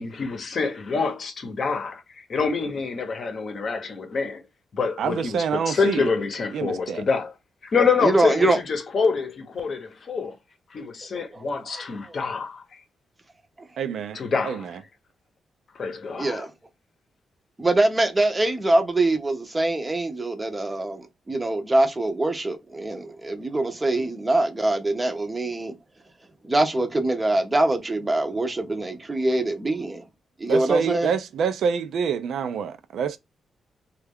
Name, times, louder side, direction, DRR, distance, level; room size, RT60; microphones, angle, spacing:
voice 1, 0.0-2.0 2.3-4.4 4.7-7.3 7.6-10.4 10.7-12.6 14.1-14.7 15.7-16.4, left 5 dB, 45° left, 0.7 m, -26 dB
voice 2, 5.0-6.1 6.5-7.0 13.8-14.8 30.5-33.2, right 6 dB, 80° right, 0.4 m, -26 dB
voice 3, 8.0-8.6 11.1-11.4 12.1-12.2 16.2-16.5 17.6-25.7 26.4-30.1 30.4-31.1, right 2 dB, 15° right, 0.6 m, -23 dB
3.2 x 2.3 x 3.5 m
wide cardioid pair, 145°, 0 cm